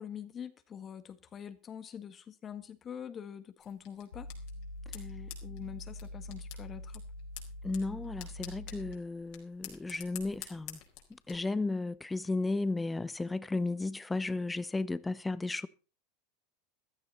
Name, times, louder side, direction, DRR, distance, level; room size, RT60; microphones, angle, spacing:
voice 1, 0.0-4.3 4.9-7.0, left 8 dB, 30° left, 1.7 m, -45 dB
sound 1, 3.6-11.4, left 11 dB, 60° left, 4.4 m, -50 dB
sound 2, 4.1-9.0, left 1 dB, 85° left, 1.9 m, -44 dB
voice 2, 7.6-10.8 11.1-15.7, left 3 dB, 10° left, 0.8 m, -34 dB
15.0 x 13.5 x 4.2 m
hypercardioid pair, 85°, 0 cm